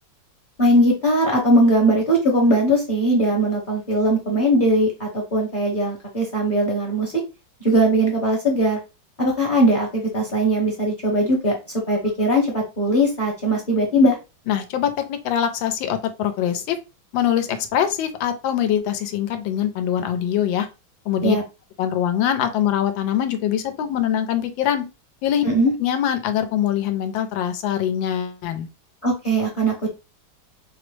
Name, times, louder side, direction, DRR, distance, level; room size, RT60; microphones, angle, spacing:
voice 1, 0.6-7.1 7.6-8.8 9.2-11.6 11.9-14.2 21.2-21.4 25.4-25.7 29.0-29.9, right 1 dB, 35° left, -2 dB, 0.9 m, -19 dB
voice 2, 14.5-16.8 17.1-20.7 21.1-21.4 21.8-24.9 25.2-25.4 25.8-28.7, left 10 dB, 85° left, 8 dB, 1.3 m, -23 dB
4.9 x 2.0 x 3.1 m, 0.27 s
omnidirectional pair, 2.1 m